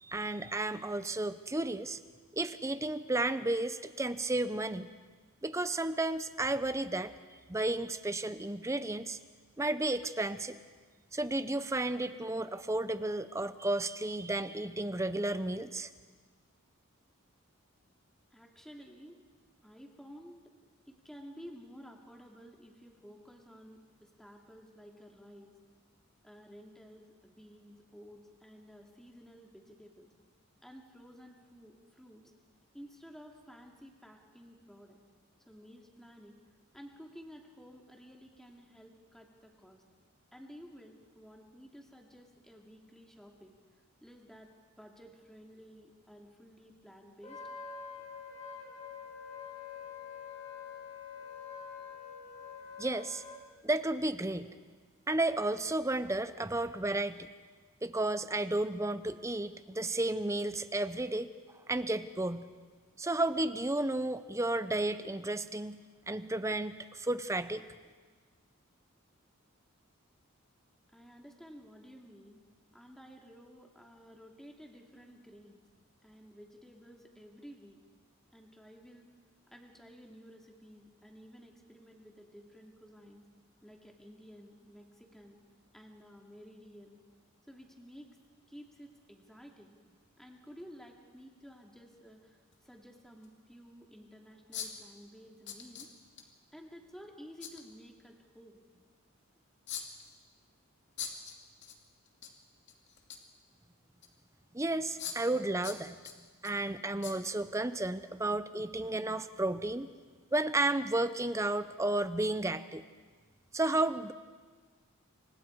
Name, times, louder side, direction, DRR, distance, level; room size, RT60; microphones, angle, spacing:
voice 1, 0.0-2.0 2.3-4.9 5.4-7.1 7.5-9.2 9.6-10.6 11.1-15.9 52.8-53.2 53.6-54.5 55.1-57.3 57.8-61.3 61.7-62.5 63.0-65.8 66.1-67.6 104.5-106.0 106.4-109.9 110.3-112.8 113.5-114.1, right 2 dB, 15° right, 12 dB, 0.7 m, -32 dB
voice 2, 18.3-19.2 19.6-20.4 20.9-25.5 26.2-30.1 30.6-32.3 32.7-35.0 35.5-36.4 36.7-39.8 40.3-43.5 44.0-44.5 44.8-47.4 70.9-72.4 72.7-75.6 76.0-77.8 78.3-79.1 79.5-83.2 83.6-85.4 85.7-87.0 87.5-88.2 88.5-89.8 90.2-95.9 96.5-98.6, equal, ahead, 1 dB, 2.5 m, -53 dB
Wind instrument woodwind instrument, 47.2-53.4, left 6 dB, 30° left, 3.9 m, -46 dB
sound 1, 90.6-90.7 92.5-92.6 93.2-93.3 94.5-94.9 95.5-96.2 97.4-97.6 99.7-100.2 101.0-101.8 102.1-102.3 102.7-103.3 104.0-104.1 105.0-105.4 105.6-106.5 107.0-107.2 107.6-107.7, left 8 dB, 55° left, 2.5 m, -42 dB
29.0 x 25.5 x 4.8 m, 1.5 s
head